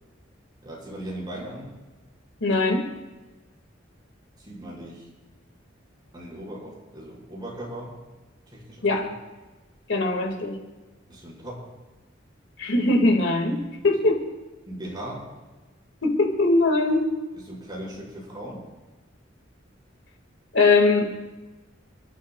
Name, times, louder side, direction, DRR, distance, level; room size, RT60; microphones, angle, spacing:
voice 1, 0.6-1.7 4.4-5.1 6.1-8.0 8.5-9.1 11.1-11.7 14.7-15.3 17.5-18.6, right 1 dB, 25° right, -6 dB, 5.8 m, -38 dB
voice 2, 2.4-2.9 8.8-9.1 9.9-10.6 12.6-14.3 16.0-17.1 20.5-21.0, left 2 dB, 70° left, 2 dB, 2.3 m, -21 dB
30.0 x 13.0 x 2.4 m, 1.2 s
head